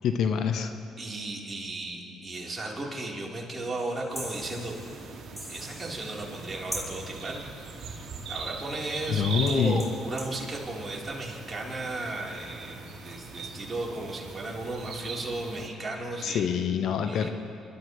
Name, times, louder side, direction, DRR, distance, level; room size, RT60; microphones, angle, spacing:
voice 1, 0.0-0.7 9.1-9.8 16.2-17.3, left 7 dB, 65° left, 8 dB, 0.8 m, -26 dB
voice 2, 1.0-4.8 5.0-5.1 5.5-7.4 7.9-16.5 17.0-17.3, right 2 dB, 30° right, -3 dB, 3.8 m, -35 dB
sound 1, 3.8-6.5 6.7-7.3 9.1-9.2 9.5-10.4, right 1 dB, ahead, 4.1 m, -41 dB
sound 2, 4.1-15.7, right 4 dB, 60° right, 2.2 m, -41 dB
27.0 x 13.0 x 3.2 m, 2.5 s
hypercardioid pair, 60°, 0 cm